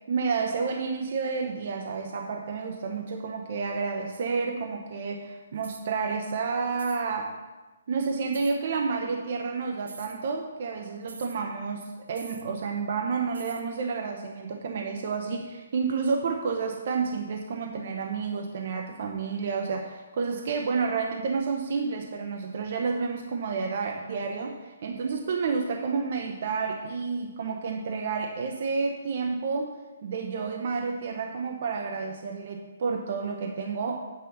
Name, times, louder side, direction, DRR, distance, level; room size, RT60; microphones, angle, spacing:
voice 1, 0.1-7.3 7.9-29.7 30.0-34.0, right 5 dB, 50° right, 3 dB, 1.0 m, -30 dB
sound 1, 5.6-5.9 6.7-7.0 8.3-8.6 9.8-10.2 11.1-11.4 12.1-12.5 13.3-13.7, right 4 dB, 90° right, 0.9 m, -45 dB
8.7 x 6.2 x 6.0 m, 1.2 s
hypercardioid pair, 160°, 0 cm